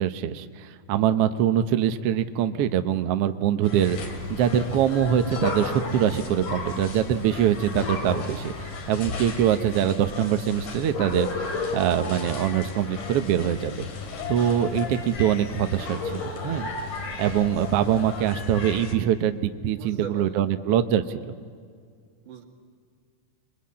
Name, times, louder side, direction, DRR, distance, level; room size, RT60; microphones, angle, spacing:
voice 1, 0.0-13.8 14.3-16.7 17.2-21.2, right 10 dB, 65° right, 9 dB, 1.6 m, -24 dB
sound 1, 3.6-18.9, left 4 dB, 75° left, 3.9 m, -36 dB
sound 2, 3.8-18.5, left 3 dB, 55° left, 3.5 m, -37 dB
voice 2, 19.8-20.6 22.2-22.4, right 7 dB, 85° right, 3 dB, 3.7 m, -39 dB
27.0 x 22.0 x 8.6 m, 2.1 s
omnidirectional pair, 3.6 m